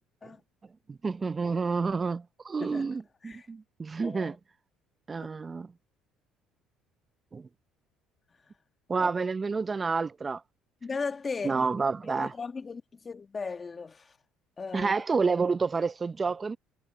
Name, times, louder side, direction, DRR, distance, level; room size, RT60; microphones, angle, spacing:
voice 1, 0.9-4.4 5.1-5.7 7.3-7.4 8.9-10.4 11.4-12.3 14.7-16.6, right 4 dB, 30° right, 0.7 m, -29 dB
voice 2, 4.0-4.4 5.1-5.3 9.0-9.1 10.8-11.7 12.0-14.1 14.6-15.0, left 4 dB, 30° left, 1.6 m, -37 dB
supercardioid pair, 90°, 0 cm